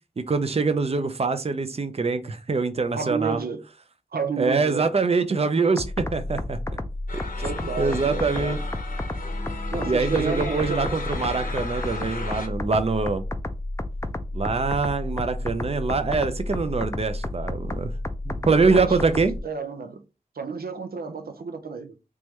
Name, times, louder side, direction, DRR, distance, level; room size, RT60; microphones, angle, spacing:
voice 1, 0.2-3.4 4.4-6.6 7.8-8.6 9.8-13.2 14.3-17.9 18.3-19.3, right 4 dB, 45° right, 0.5 m, -24 dB
voice 2, 2.9-3.7 4.1-4.9 7.4-8.6 9.7-11.0 18.6-20.0 20.4-22.0, right 5 dB, 90° right, 0.5 m, -31 dB
sound 1, 5.8-19.4, left 1 dB, 20° left, 0.4 m, -31 dB
sound 2, 7.1-12.5, left 4 dB, 70° left, 0.9 m, -36 dB
3.6 x 3.1 x 3.0 m
wide cardioid pair, 65°, 15 cm